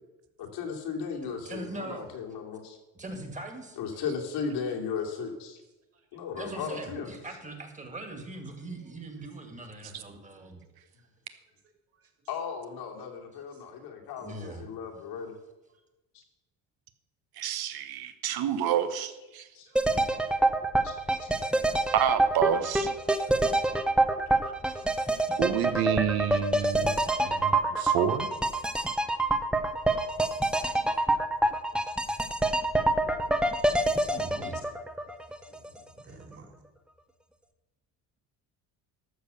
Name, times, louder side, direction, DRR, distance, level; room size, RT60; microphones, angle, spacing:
voice 1, 0.4-2.8 3.8-5.6 6.1-7.1 12.3-15.4 16.1-16.2 19.5-20.0 20.8-20.9 21.2-21.3 24.3-24.4 25.9-26.6 35.5-35.8, left 6 dB, 90° left, 1 dB, 2.7 m, -36 dB
voice 2, 1.2-2.1 2.9-3.8 6.4-10.6 13.3-13.4 14.2-14.6 18.3-18.7 34.1-34.7, right 2 dB, 20° right, 5 dB, 2.1 m, -41 dB
voice 3, 17.4-19.4 21.9-22.9 25.4-27.0 27.2-28.3, right 9 dB, 70° right, 10 dB, 1.1 m, -28 dB
voice 4, 19.7-20.3 20.6-20.7 21.1-21.5 23.6-23.7 24.7-25.4 36.0-36.5, right 3 dB, 35° right, 4 dB, 2.9 m, -55 dB
sound 1, 19.8-35.7 36.0-36.1, right 2 dB, ahead, 0.6 m, -26 dB
13.0 x 6.7 x 6.9 m, 1.0 s
cardioid pair, 135°, 38 cm